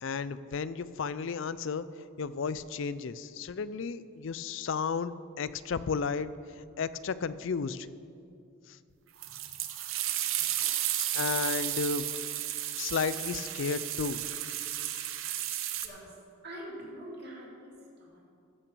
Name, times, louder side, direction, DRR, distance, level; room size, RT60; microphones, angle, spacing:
voice 1, 0.0-1.8 2.2-6.3 6.8-7.9 8.7-8.8 11.1-12.1 12.8-14.2, left 5 dB, 60° left, 15 dB, 0.4 m, -33 dB
sound 1, 9.2-15.9, right 12 dB, 65° right, 0.7 m, -33 dB
voice 2, 16.4-17.7 18.0-18.3, right 1 dB, 50° right, -4 dB, 2.5 m, -44 dB
14.5 x 5.9 x 6.9 m, 2.4 s
head